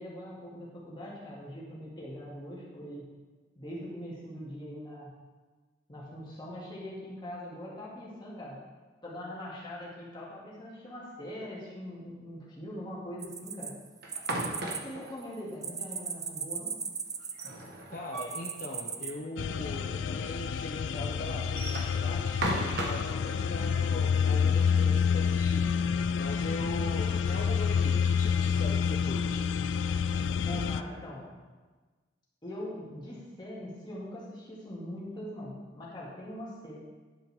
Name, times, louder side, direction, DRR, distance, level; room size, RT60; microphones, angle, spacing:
voice 1, 0.0-3.0 3.6-5.1 5.9-8.6 9.0-13.7 14.8-16.8 30.4-31.3 32.4-36.8, equal, 25° left, -6 dB, 2.1 m, -42 dB
sound 1, 13.2-14.8 15.1-17.7 18.1-19.1, right 6 dB, 20° right, 0.4 m, -37 dB
sound 2, 14.0-15.1 17.2-18.5 18.8-18.9 19.2-19.3 20.1-20.2 21.4-23.1, right 1 dB, 60° right, 1.3 m, -35 dB
voice 2, 17.9-22.4 22.8-29.4, left 1 dB, 50° left, -1 dB, 0.7 m, -40 dB
sound 3, 19.4-30.8, left 6 dB, 90° left, 0.3 m, -28 dB
10.5 x 5.8 x 3.5 m, 1.3 s
head